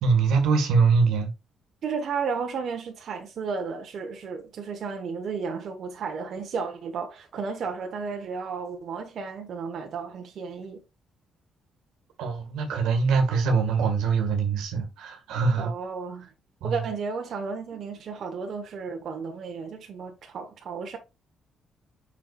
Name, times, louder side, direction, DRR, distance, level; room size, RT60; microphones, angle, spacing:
voice 1, 0.0-1.3 12.2-15.7 16.6-16.8, right 5 dB, 90° right, 1.7 m, -23 dB
voice 2, 1.8-10.8 15.6-16.3 16.6-21.0, right 5 dB, 60° right, 1.2 m, -33 dB
6.9 x 5.8 x 2.4 m
cardioid pair, 90°, 0 cm